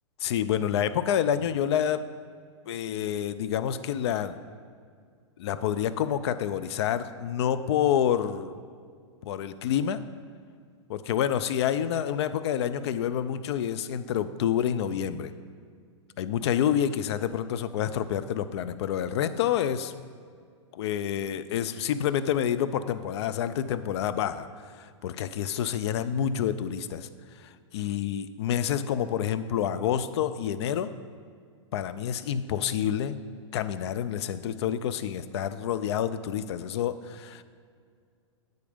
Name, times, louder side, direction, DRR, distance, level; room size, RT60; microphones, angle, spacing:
voice 1, 0.2-2.0 2.7-4.3 5.4-8.6 9.2-10.0 10.9-15.3 16.2-19.9 20.7-24.5 24.7-27.1 27.4-30.9 31.7-33.2 33.5-37.4, left 9 dB, 60° left, 13 dB, 0.4 m, -28 dB
8.0 x 5.1 x 5.1 m, 2.1 s
hypercardioid pair, 120°, 16 cm